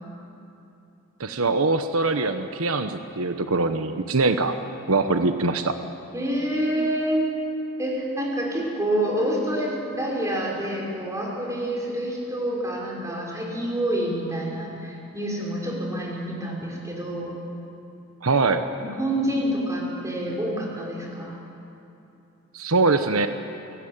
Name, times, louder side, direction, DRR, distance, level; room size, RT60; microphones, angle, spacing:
voice 1, 1.2-4.5 4.9-5.8 18.2-18.6 22.5-23.3, right 3 dB, 85° right, 8 dB, 1.1 m, -22 dB
voice 2, 6.1-7.3 7.8-17.3 18.8-21.4, right 1 dB, 15° right, -2 dB, 5.9 m, -27 dB
28.5 x 19.5 x 8.9 m, 2.9 s
head